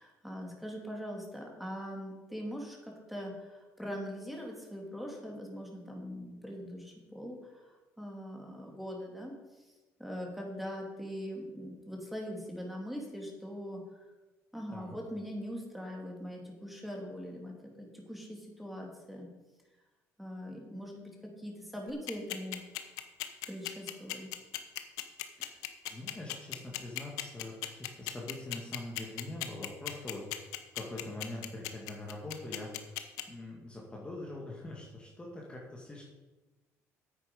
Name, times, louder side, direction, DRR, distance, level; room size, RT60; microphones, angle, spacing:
voice 1, 0.0-9.3 10.0-13.8 14.5-19.3 20.2-22.6 23.5-24.3, equal, ahead, 0 dB, 2.7 m, -42 dB
sound 1, 21.9-33.2, left 17 dB, 90° left, 0.8 m, -36 dB
voice 2, 25.9-30.3 30.7-32.9 33.3-36.1, left 2 dB, 15° left, -3 dB, 2.2 m, -43 dB
9.2 x 8.5 x 5.4 m, 1.2 s
cardioid pair, 95°, 6 cm